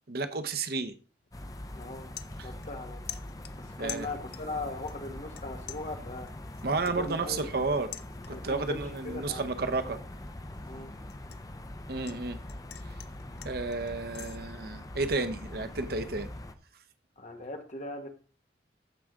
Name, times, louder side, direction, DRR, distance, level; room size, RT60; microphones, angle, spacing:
voice 1, 0.1-1.0 2.4-2.5 3.8-4.1 6.6-7.9 8.4-10.0 11.9-12.4 12.8-13.0 13.4-16.3, right 3 dB, 55° right, 0.8 m, -32 dB
sound 1, 1.2-1.4 1.8-2.8 3.1-4.6 4.9-5.4 5.7-8.6 9.0-9.3 9.7-12.2 12.5-14.4, left 13 dB, 60° left, 0.5 m, -46 dB
sound 2, 1.3-16.6, left 1 dB, 20° left, 0.6 m, -43 dB
voice 2, 1.7-2.1 2.4-3.0 3.6-6.3 6.9-7.6 8.3-10.0 10.7-11.0 17.2-18.1, left 2 dB, 40° left, 1.5 m, -40 dB
13.5 x 4.8 x 3.7 m
head